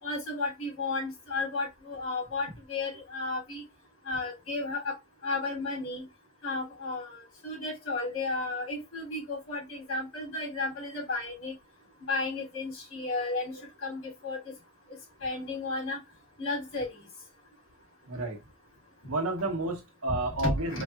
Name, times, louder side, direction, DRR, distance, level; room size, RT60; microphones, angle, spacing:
voice 1, 0.0-3.6 4.0-5.0 5.2-6.0 6.4-11.5 12.1-14.4 15.2-16.0 16.4-17.0 20.1-20.8, left 3 dB, 70° left, 2.8 m, -33 dB
voice 2, 18.1-18.4 19.1-20.8, right 2 dB, 85° right, 1.2 m, -31 dB
5.0 x 2.8 x 2.3 m
head